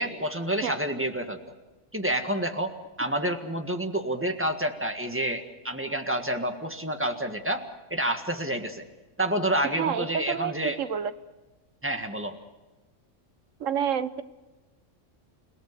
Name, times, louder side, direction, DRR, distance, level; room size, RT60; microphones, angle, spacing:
voice 1, 0.0-1.4 1.9-8.9 9.2-10.8 11.8-12.4, right 1 dB, 10° right, 5 dB, 1.8 m, -29 dB
voice 2, 9.8-11.1 13.6-14.2, right 8 dB, 85° right, 13 dB, 1.3 m, -29 dB
29.5 x 18.0 x 6.8 m, 1.1 s
omnidirectional pair, 1.3 m